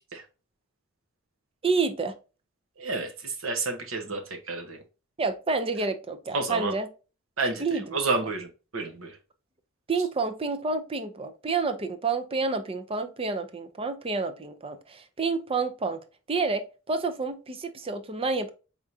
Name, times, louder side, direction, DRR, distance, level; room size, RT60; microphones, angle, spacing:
voice 1, 1.6-2.1 5.2-6.9 7.6-8.0 9.9-16.0 16.3-18.5, right 4 dB, 30° right, 0.6 m, -29 dB
voice 2, 2.8-4.8 6.3-6.7 7.4-9.2, right 3 dB, 75° right, 1.1 m, -30 dB
4.7 x 3.6 x 2.7 m
head